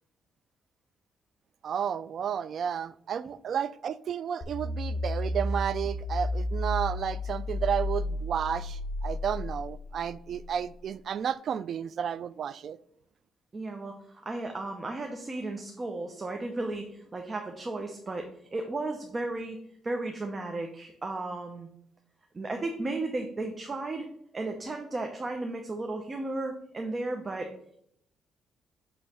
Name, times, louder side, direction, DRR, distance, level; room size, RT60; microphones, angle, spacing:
voice 1, 1.6-12.8, right 8 dB, 60° right, 0.3 m, -32 dB
sound 1, 4.4-10.7, left 1 dB, 25° left, 2.1 m, -33 dB
voice 2, 13.5-19.6 19.8-21.7 22.3-24.1 24.3-27.5, right 2 dB, 30° right, 0.8 m, -34 dB
8.1 x 3.2 x 5.5 m
cardioid pair, 90°, 0 cm